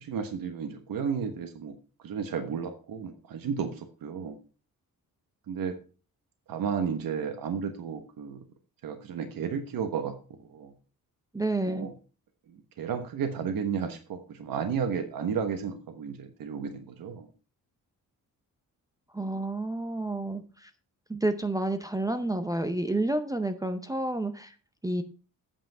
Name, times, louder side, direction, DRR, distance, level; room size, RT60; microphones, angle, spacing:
voice 1, 0.0-1.7 2.0-4.4 5.5-5.8 6.5-8.4 8.8-10.1 10.5-10.7 11.6-11.9 12.8-17.3, right 6 dB, 75° right, 7 dB, 1.2 m, -33 dB
voice 2, 11.3-11.9 19.1-20.7 21.1-24.5 24.8-25.0, right 2 dB, 10° right, 7 dB, 0.6 m, -30 dB
8.7 x 5.7 x 5.4 m, 0.36 s
wide cardioid pair, 170°, 34 cm